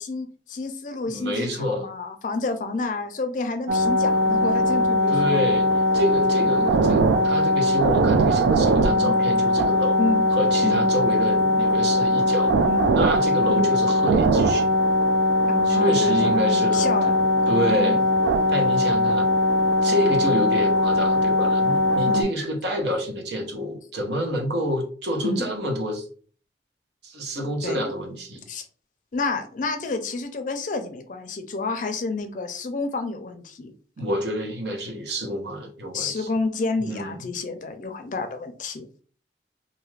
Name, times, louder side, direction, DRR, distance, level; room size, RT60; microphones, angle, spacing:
voice 1, 0.0-5.4 6.4-6.7 8.9-9.2 10.0-10.2 10.6-10.8 12.7-12.9 13.5-13.7 15.5-17.2 17.6-18.1 22.1-22.3 25.2-25.5 27.6-27.8 28.5-28.7 29.1-33.7 35.9-38.9, left 3 dB, 45° left, 7 dB, 0.4 m, -29 dB
voice 2, 1.1-1.9 5.1-5.7 5.9-10.0 10.3-12.5 12.9-14.7 15.6-18.0 18.5-19.3 19.8-26.1 27.0-28.4 34.0-36.3 36.8-37.2, equal, 70° right, 1 dB, 0.9 m, -28 dB
sound 1, 3.7-22.2, left 1 dB, 85° right, 0.4 m, -20 dB
2.6 x 2.4 x 3.1 m, 0.42 s
head